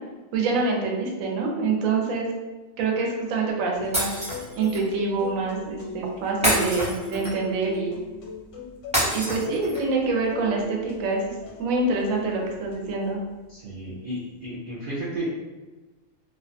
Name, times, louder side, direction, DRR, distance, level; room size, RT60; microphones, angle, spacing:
voice 1, 0.3-2.3 2.8-4.1 4.6-8.0 9.1-13.2, right 3 dB, 80° right, 0 dB, 1.0 m, -26 dB
sound 1, 3.7-13.2, left 3 dB, 85° left, 1.1 m, -40 dB
Shatter, 3.9-4.8 6.4-7.5 8.9-9.9, equal, 5° right, 0.6 m, -26 dB
voice 2, 13.5-15.3, right 1 dB, 65° right, -6 dB, 0.5 m, -32 dB
2.5 x 2.2 x 2.6 m, 1.2 s
omnidirectional pair, 1.4 m